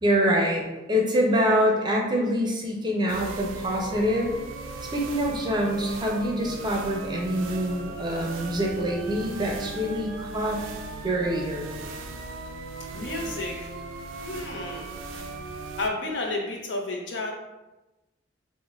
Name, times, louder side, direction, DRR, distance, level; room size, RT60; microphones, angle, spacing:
voice 1, 0.0-4.4 4.8-10.6 11.0-11.7, equal, 25° right, -1 dB, 0.5 m, -25 dB
sound 1, 3.1-15.9, right 3 dB, 85° right, 0.4 m, -38 dB
voice 2, 12.9-13.7 14.2-15.0 15.8-17.3, left 2 dB, 65° left, 1 dB, 0.6 m, -31 dB
5.1 x 2.1 x 2.4 m, 1.0 s
head